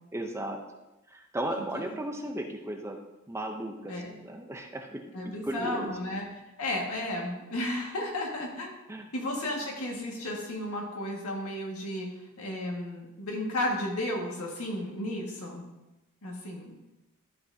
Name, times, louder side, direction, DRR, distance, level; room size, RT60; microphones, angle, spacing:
voice 1, 0.1-0.6 1.1-3.0 3.3-5.9 8.9-9.1, right 1 dB, 10° right, 3 dB, 0.6 m, -36 dB
voice 2, 1.6-1.9 3.9-4.1 5.1-6.3 6.6-8.7 9.1-12.1 12.4-15.6 16.2-16.7, left 1 dB, 85° left, -1 dB, 1.8 m, -33 dB
12.5 x 5.4 x 2.7 m, 1.0 s
head